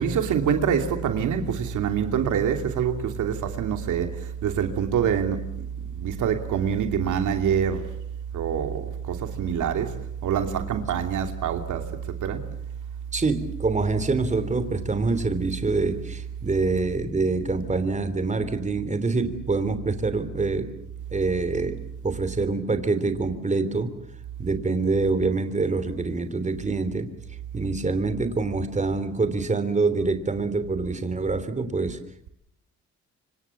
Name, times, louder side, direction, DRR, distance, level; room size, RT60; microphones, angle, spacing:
voice 1, 0.0-5.5 5.9-7.9 8.3-9.9 10.2-11.9 12.2-12.4, right 8 dB, 80° right, 2.9 m, -25 dB
voice 2, 13.1-20.7 21.1-21.8 22.0-23.9 24.4-27.1 27.5-32.0, right 3 dB, 25° right, 3.3 m, -25 dB
26.5 x 25.0 x 7.3 m
cardioid pair, 90°, 30 cm